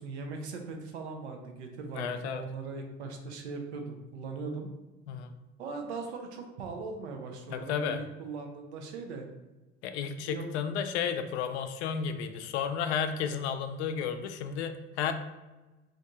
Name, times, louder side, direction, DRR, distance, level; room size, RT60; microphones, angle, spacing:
voice 1, 0.0-4.7 5.6-9.3 10.3-10.5, right 4 dB, 75° right, 4 dB, 0.6 m, -39 dB
voice 2, 1.9-2.4 5.1-5.4 7.5-8.0 9.8-15.1, left 7 dB, 75° left, 8 dB, 0.5 m, -32 dB
2.6 x 2.6 x 3.4 m, 1.1 s
hypercardioid pair, 65°, 34 cm